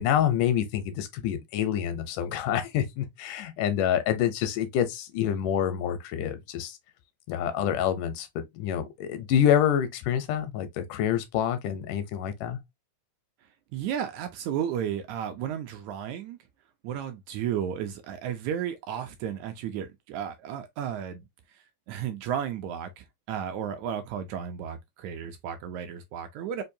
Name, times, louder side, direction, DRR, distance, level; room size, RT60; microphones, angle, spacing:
voice 1, 0.0-6.8 7.3-8.3 8.5-12.6, left 10 dB, 85° left, 2.2 m, -27 dB
voice 2, 13.7-16.4 16.8-21.3 21.5-26.6, right 9 dB, 80° right, 1.7 m, -33 dB
5.3 x 2.2 x 2.6 m
omnidirectional pair, 3.6 m